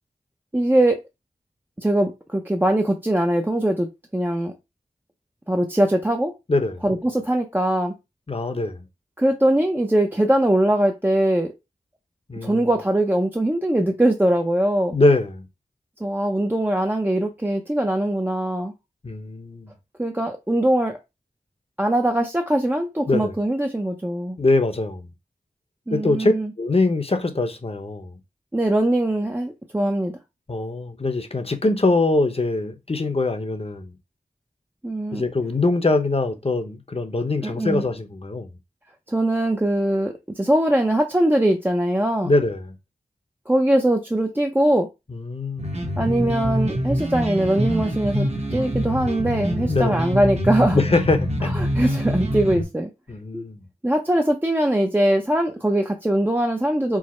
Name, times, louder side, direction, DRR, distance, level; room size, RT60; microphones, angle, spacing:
voice 1, 0.5-1.0 1.8-3.9 4.1-4.5 5.5-6.3 6.8-7.9 9.2-11.5 12.4-15.0 16.0-18.7 20.0-21.0 21.8-24.4 25.9-26.5 28.5-30.1 34.8-35.3 37.4-37.8 39.1-42.3 43.5-44.9 46.0-50.8 51.5-52.9 53.3-53.5 53.8-57.0, right 1 dB, 15° right, 0.6 m, -21 dB
voice 2, 6.5-6.8 8.3-8.8 12.3-12.7 14.9-15.4 19.0-19.7 23.1-23.3 24.4-25.1 25.9-28.2 30.5-33.9 35.1-38.5 42.2-42.7 45.1-45.7 49.7-50.0 50.7-51.5 53.1-53.6, left 2 dB, 40° left, 0.8 m, -23 dB
sound 1, 45.6-52.6, equal, 45° right, 1.1 m, -25 dB
4.7 x 2.0 x 4.2 m
wide cardioid pair, 55°, 15 cm